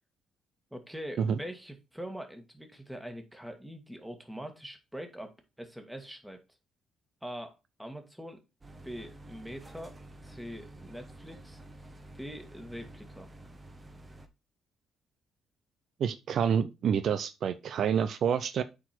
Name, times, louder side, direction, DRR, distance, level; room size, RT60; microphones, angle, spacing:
voice 1, 0.7-5.3 5.6-6.4 7.2-8.4 8.8-9.9 10.2-11.6 12.1-13.3, equal, 5° right, 1.9 m, -43 dB
sound 1, 8.6-14.3, right 1 dB, 25° right, 1.2 m, -50 dB
voice 2, 16.0-18.6, right 7 dB, 65° right, 0.5 m, -28 dB
8.5 x 4.6 x 4.4 m
cardioid pair, 90°, 0 cm